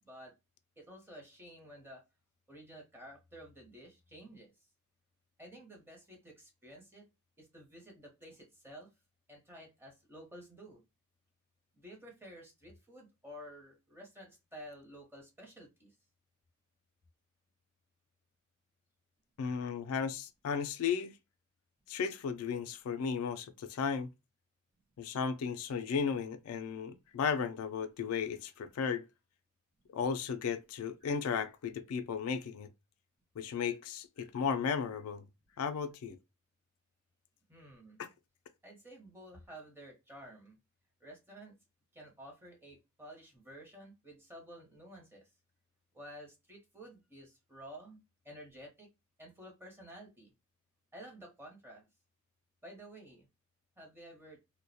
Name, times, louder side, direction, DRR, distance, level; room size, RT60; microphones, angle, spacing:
voice 1, 0.0-0.3 0.8-2.0 2.5-4.5 5.4-7.1 7.4-8.9 9.3-10.8 11.7-15.9 37.5-38.0 38.6-40.6 41.0-41.5 41.9-45.3 45.9-48.0 48.2-48.9 49.2-50.3 50.9-51.8 52.6-53.3 53.8-54.4, equal, 10° right, 0.7 m, -52 dB
voice 2, 19.4-21.1 21.9-24.1 25.0-29.0 29.9-32.7 33.4-35.2 35.6-36.2 38.0-38.1, left 6 dB, 80° left, 0.3 m, -35 dB
2.2 x 2.1 x 2.6 m
head